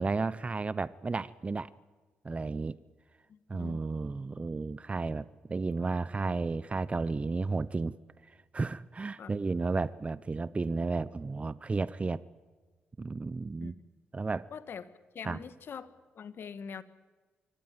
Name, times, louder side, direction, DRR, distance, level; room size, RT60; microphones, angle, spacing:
voice 1, 0.0-1.7 2.2-2.8 3.5-7.9 8.3-12.2 13.0-13.7 14.1-14.5 15.2-15.4, right 3 dB, 30° right, 17 dB, 0.8 m, -33 dB
voice 2, 3.3-3.8 9.2-9.3 13.6-13.7 14.5-14.8 15.1-15.9 16.1-16.8, left 7 dB, 60° left, 13 dB, 1.7 m, -43 dB
24.5 x 16.5 x 9.7 m, 1.3 s
supercardioid pair, 55°, 4 cm